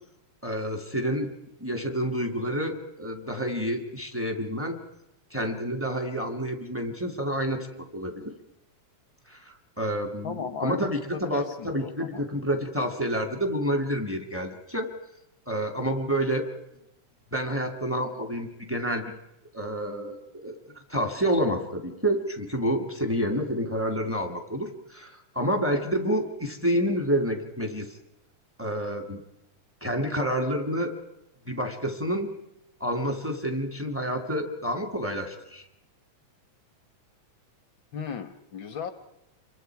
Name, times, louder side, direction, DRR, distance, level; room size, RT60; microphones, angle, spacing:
voice 1, 0.4-1.3 1.6-4.8 5.3-7.7 7.9-8.3 9.3-14.9 15.5-16.5 17.3-19.1 19.5-20.5 20.9-27.9 28.6-29.2 29.8-30.9 31.5-32.3 32.8-35.6, equal, 5° right, 5 dB, 1.8 m, -29 dB
voice 2, 10.2-12.2 37.9-38.9, left 6 dB, 60° left, 10 dB, 1.3 m, -36 dB
28.5 x 23.5 x 4.7 m, 0.85 s
omnidirectional pair, 3.5 m